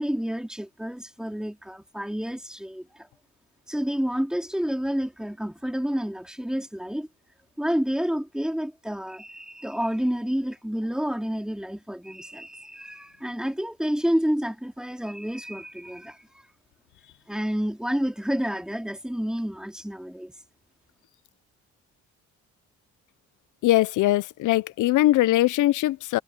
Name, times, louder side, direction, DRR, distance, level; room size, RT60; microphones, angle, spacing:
voice 1, 0.0-3.1 3.7-7.1 7.6-16.4 17.3-20.3, equal, ahead, 3.8 m, -29 dB
voice 2, 23.6-26.2, left 15 dB, 80° left, 0.6 m, -21 dB
cardioid pair, 90°, 30 cm